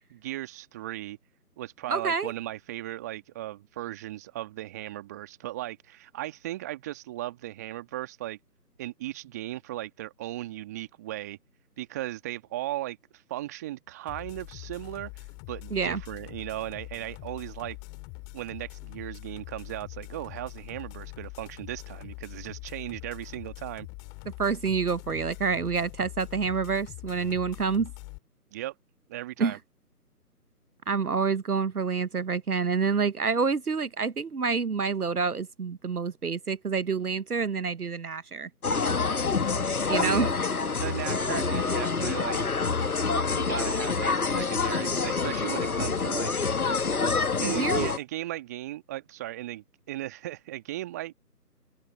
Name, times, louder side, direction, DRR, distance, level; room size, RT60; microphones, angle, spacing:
voice 1, 0.1-1.2 1.6-8.4 8.8-11.4 11.8-13.0 13.3-17.8 18.3-23.9 28.5-28.7 29.1-29.6 39.9-40.3 40.8-42.4 43.3-46.3 47.4-51.1, right 15 dB, 10° right, 1.8 m, -37 dB
voice 2, 1.9-2.3 15.7-16.0 24.4-27.9 29.4-29.6 30.9-38.5 39.9-40.3 47.4-47.9, right 5 dB, 70° right, 0.9 m, -27 dB
sound 1, 14.1-28.2, left 33 dB, 10° left, 2.5 m, -43 dB
sound 2, 38.6-48.0, left 4 dB, 65° left, 1.4 m, -27 dB
open air
figure-of-eight pair, 155°, 48 cm